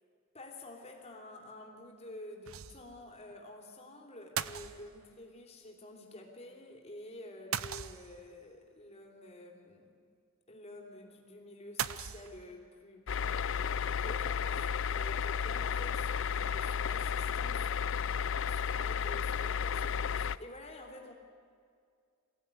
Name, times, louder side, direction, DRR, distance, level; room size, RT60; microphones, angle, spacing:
voice 1, 0.3-9.9 10.5-21.1, left 1 dB, 30° left, 1 dB, 3.1 m, -50 dB
sound 1, 2.5-3.0 3.3-3.4 4.4-5.2 7.5-8.4 11.8-12.7, right 9 dB, 80° right, 0.7 m, -38 dB
sound 2, 13.1-20.4, left 7 dB, 60° left, 0.5 m, -33 dB
22.5 x 16.0 x 9.7 m, 2.2 s
head